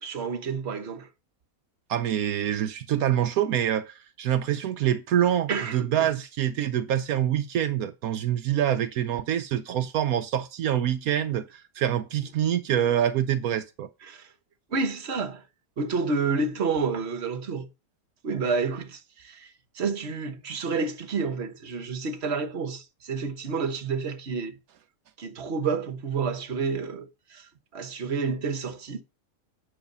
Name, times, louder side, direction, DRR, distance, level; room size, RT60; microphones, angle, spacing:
voice 1, 0.0-1.1 5.5-6.1 14.1-14.3 14.7-15.4 15.8-17.7 18.2-19.5 19.7-24.6 25.2-29.0, right 4 dB, 50° right, 1.4 m, -29 dB
voice 2, 1.9-13.9, right 10 dB, 80° right, 1.1 m, -26 dB
9.5 x 6.4 x 5.4 m
omnidirectional pair, 1.5 m